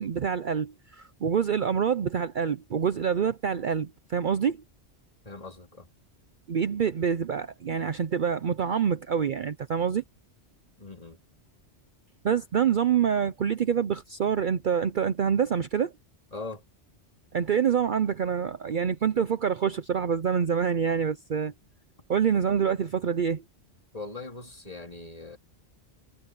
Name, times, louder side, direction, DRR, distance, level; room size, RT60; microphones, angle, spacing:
voice 1, 0.0-4.6 6.5-10.0 12.2-15.9 17.3-21.5 22.1-23.4, right 7 dB, 50° right, 0.7 m, -26 dB
voice 2, 5.3-5.9 10.8-11.2 16.3-16.6 23.9-25.4, left 3 dB, 35° left, 3.4 m, -40 dB
omnidirectional pair, 1.2 m